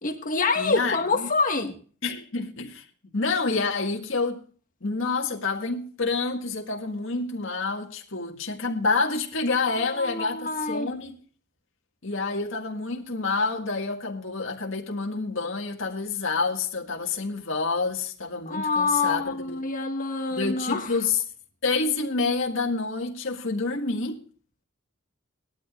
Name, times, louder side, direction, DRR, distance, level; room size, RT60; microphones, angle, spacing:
voice 1, 0.0-1.7 9.7-10.9 18.4-21.0, left 3 dB, 40° left, 1.6 m, -26 dB
voice 2, 0.6-1.3 2.0-2.9 3.1-4.4 4.8-11.2 12.0-19.6 20.3-21.2 21.6-24.2, left 4 dB, 60° left, 1.9 m, -28 dB
19.5 x 12.5 x 2.4 m
head